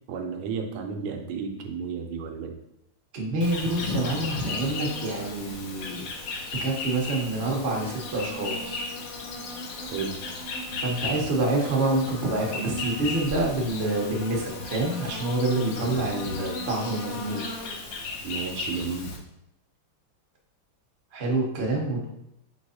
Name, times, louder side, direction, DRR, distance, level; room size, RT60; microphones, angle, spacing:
voice 1, 0.1-2.6 9.9-10.2 15.8-16.1 18.2-19.1, right 5 dB, 80° right, 4 dB, 1.5 m, -33 dB
voice 2, 3.1-6.1 6.6-8.9 10.8-17.4 21.1-22.0, right 2 dB, 50° right, -1 dB, 0.8 m, -27 dB
Insect, 3.4-19.2, left 3 dB, 90° left, 0.7 m, -35 dB
4.6 x 4.2 x 2.7 m, 0.82 s
omnidirectional pair, 2.4 m